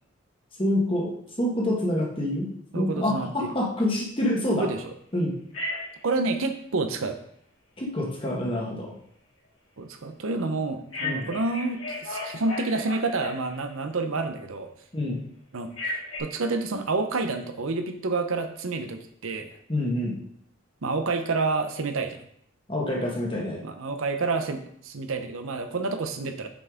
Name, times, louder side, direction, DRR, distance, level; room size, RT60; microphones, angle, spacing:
voice 1, 0.6-2.5 2.7-4.7 5.1-5.4 7.8-8.9 11.0-11.3 14.9-15.2 19.7-20.2 22.7-23.6, left 1 dB, 25° left, -2 dB, 1.3 m, -27 dB
voice 2, 2.7-3.5 4.6-4.9 6.0-7.2 9.8-14.7 15.5-19.6 20.8-22.2 23.6-26.5, right 3 dB, 75° right, 7 dB, 0.7 m, -29 dB
Telephone, 5.5-6.1 10.9-13.8 15.7-16.2, left 2 dB, 75° left, 2.6 m, -34 dB
6.1 x 5.7 x 3.6 m, 0.69 s
head